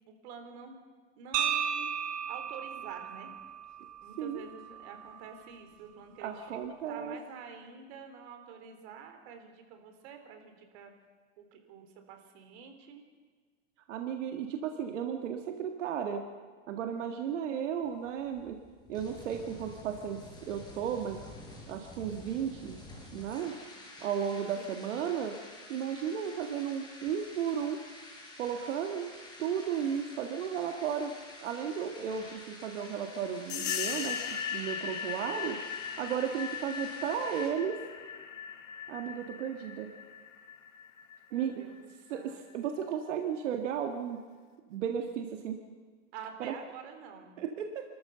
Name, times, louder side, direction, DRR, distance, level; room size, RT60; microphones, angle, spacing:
voice 1, 0.1-0.7 1.2-1.9 2.3-3.3 4.0-10.9 11.4-13.0 24.6-24.9 41.3-42.4 46.1-47.4, right 6 dB, 60° right, 5 dB, 3.7 m, -48 dB
sound 1, 1.3-5.4, right 8 dB, 40° right, 2.2 m, -35 dB
voice 2, 6.2-7.2 13.9-16.2 16.7-18.6 18.9-21.2 21.7-22.8 23.1-23.6 24.0-25.3 25.7-27.8 28.4-29.1 29.4-31.1 31.4-35.6 36.0-37.8 38.9-39.9 41.3-41.5 42.1-44.2 44.7-45.6 46.4-46.5 47.4-47.8, right 8 dB, 80° right, 4 dB, 1.9 m, -34 dB
sound 2, 17.8-37.5, left 1 dB, 10° left, 5.6 m, -50 dB
sound 3, 33.5-41.8, left 7 dB, 85° left, 2.9 m, -38 dB
29.0 x 14.0 x 6.9 m, 1.5 s
supercardioid pair, 140°, 36 cm